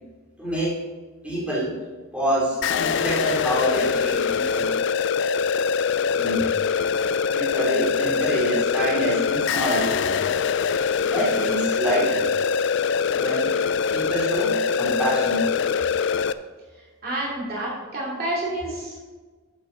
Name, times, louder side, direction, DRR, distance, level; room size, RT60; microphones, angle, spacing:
voice 1, 0.4-0.8 1.2-1.7 2.1-4.8 6.1-6.5 7.3-10.1 11.0-12.3 13.1-13.5 13.9-15.4, equal, 5° right, -7 dB, 3.0 m, -26 dB
sound 1, 2.6-16.3, left 6 dB, 55° left, 0.4 m, -23 dB
voice 2, 16.8-19.1, right 1 dB, 45° right, -5 dB, 2.7 m, -29 dB
11.5 x 8.2 x 3.9 m, 1.3 s
head